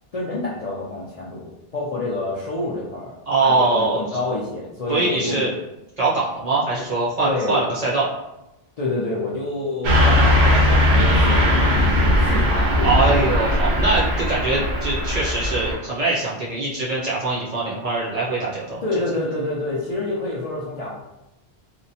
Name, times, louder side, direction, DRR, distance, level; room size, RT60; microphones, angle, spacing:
voice 1, 0.1-5.5 7.2-7.6 8.8-11.8 12.2-13.3 18.8-20.9, left 2 dB, 50° left, -7 dB, 0.4 m, -28 dB
voice 2, 3.3-4.1 4.9-5.5 6.0-8.0 12.8-18.8, right 3 dB, 45° right, -7 dB, 0.6 m, -22 dB
Car passing by / Truck, 9.8-15.7, left 1 dB, 85° right, 0.9 m, -18 dB
2.8 x 2.1 x 2.7 m, 0.93 s
omnidirectional pair, 1.1 m